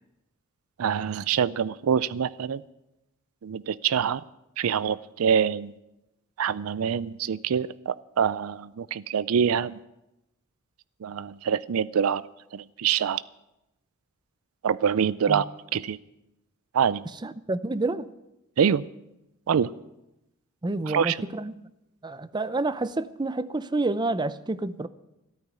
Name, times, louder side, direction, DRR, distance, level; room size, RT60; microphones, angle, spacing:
voice 1, 0.8-2.6 3.4-4.2 4.6-5.7 6.4-9.8 11.0-12.2 12.5-13.2 14.6-15.4 15.7-16.0 16.7-17.1 18.6-18.8 19.5-19.7 20.9-21.2, right 7 dB, 90° right, 0.4 m, -25 dB
voice 2, 17.2-18.1 20.6-21.5 22.0-24.9, right 2 dB, 20° right, 0.5 m, -29 dB
14.0 x 9.1 x 9.4 m
head